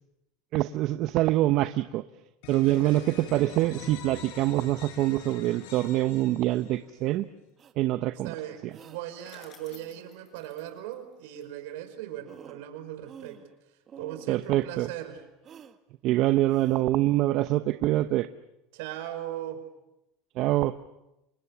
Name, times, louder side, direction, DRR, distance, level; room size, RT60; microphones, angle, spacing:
voice 1, 0.5-2.0 2.5-7.2 7.8-8.3 8.6-8.7 14.3-14.9 16.0-18.3 20.4-20.7, right 15 dB, 55° right, 11 dB, 1.0 m, -25 dB
sound 1, 2.4-7.0, left 8 dB, 75° left, 5.4 m, -45 dB
voice 2, 2.6-3.0 8.2-13.4 14.0-15.2 18.7-19.6, right 12 dB, 75° right, 8 dB, 5.2 m, -38 dB
sound 2, 7.6-7.7 8.7-9.0 9.7-10.2 11.9-12.0 12.2-12.7 13.0-13.6 13.9-14.3 15.4-15.8 16.5-16.9, right 8 dB, 35° right, 1.9 m, -47 dB
Bicycle, 8.7-11.9, left 5 dB, 40° left, 6.8 m, -56 dB
29.5 x 26.0 x 7.1 m, 0.91 s
supercardioid pair, 105°, 0 cm